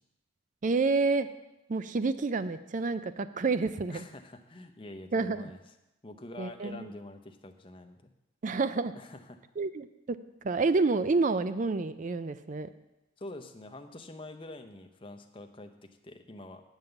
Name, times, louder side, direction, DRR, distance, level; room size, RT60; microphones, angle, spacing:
voice 1, 0.6-1.3 1.7-4.0 5.1-5.5 6.4-6.9 8.4-8.9 9.6-10.2 10.4-12.7, right 3 dB, 40° right, 12 dB, 0.4 m, -29 dB
voice 2, 3.9-5.6 6.0-8.1 8.9-9.4 13.2-15.7 16.0-16.6, left 2 dB, 25° left, 6 dB, 0.7 m, -46 dB
9.0 x 5.5 x 7.9 m, 0.94 s
head